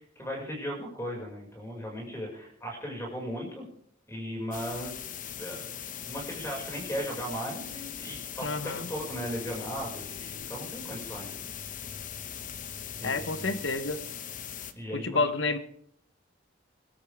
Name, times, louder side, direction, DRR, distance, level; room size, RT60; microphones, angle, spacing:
voice 1, 0.2-3.6 4.1-5.0 5.4-5.7 6.0-11.3 13.0-13.6 14.7-15.2, equal, 15° left, -1 dB, 5.9 m, -37 dB
sound 1, 4.5-14.7, left 8 dB, 45° left, 1.0 m, -40 dB
voice 2, 8.4-8.9 13.0-14.0 14.9-15.6, left 3 dB, 80° left, 11 dB, 1.2 m, -29 dB
23.5 x 12.5 x 3.6 m, 0.67 s
head